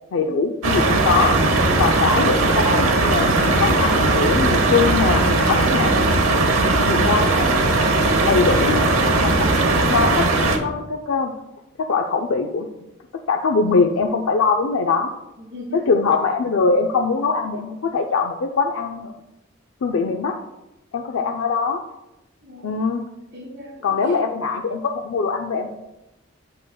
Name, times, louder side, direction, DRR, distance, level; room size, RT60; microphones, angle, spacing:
voice 1, 0.1-1.4 1.8-5.9 6.8-7.5 8.2-9.0 9.2-9.5 9.7-11.3 11.8-12.7 13.3-15.1 15.7-19.1 19.8-20.4 20.9-21.8 22.6-23.0 23.8-25.7, left 4 dB, 75° left, 3 dB, 0.4 m, -22 dB
sound 1, 0.6-10.6, right 2 dB, 85° right, 0.9 m, -18 dB
voice 2, 6.5-6.8 15.4-15.9 21.2-21.4 22.4-22.7 23.3-24.3, right 1 dB, 60° right, -4 dB, 1.5 m, -38 dB
8.4 x 6.5 x 2.3 m, 0.95 s
head